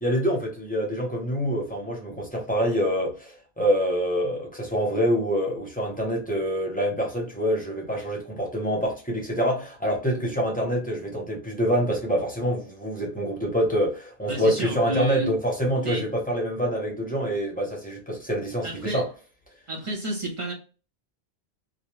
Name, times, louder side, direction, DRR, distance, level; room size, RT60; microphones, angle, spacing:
voice 1, 0.0-19.1, equal, 10° left, 0.6 m, -26 dB
voice 2, 14.3-15.3 15.8-16.0 18.6-19.0 19.7-20.5, right 1 dB, 35° right, 0.7 m, -30 dB
2.4 x 2.1 x 3.0 m
omnidirectional pair, 1.1 m